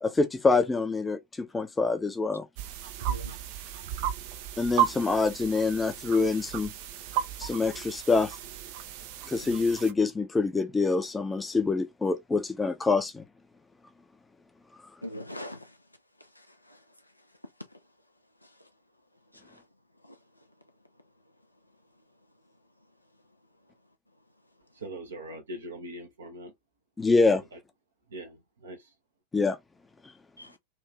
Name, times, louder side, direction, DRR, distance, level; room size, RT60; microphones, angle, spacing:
voice 1, 0.0-2.5 4.6-6.7 7.4-8.4 9.3-13.2 27.0-27.4 29.3-29.6, left 3 dB, 10° left, 0.7 m, -26 dB
sound 1, 2.6-9.9, right 10 dB, 45° right, 0.6 m, -34 dB
voice 2, 3.0-3.4 15.0-15.7 16.4-16.8 19.4-19.6 20.0-20.1 30.4-30.6, left 1 dB, 85° left, 0.6 m, -42 dB
voice 3, 24.7-26.5 27.5-27.6 28.1-28.9, right 1 dB, 70° right, 1.0 m, -41 dB
3.5 x 2.6 x 3.2 m
figure-of-eight pair, 90°, 0 cm